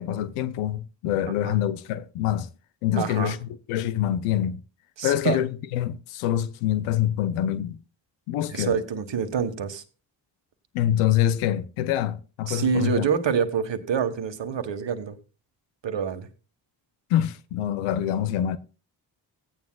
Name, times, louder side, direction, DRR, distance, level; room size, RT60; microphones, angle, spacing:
voice 1, 0.0-2.5 2.8-4.6 5.0-7.8 8.3-8.8 10.7-13.1 17.1-18.6, left 11 dB, 90° left, 0.6 m, -25 dB
voice 2, 1.3-1.6 3.0-3.3 5.0-5.4 8.5-9.8 12.5-15.2 15.8-16.3, right 6 dB, 60° right, 1.5 m, -26 dB
16.0 x 9.4 x 2.3 m
supercardioid pair, 40°, 49 cm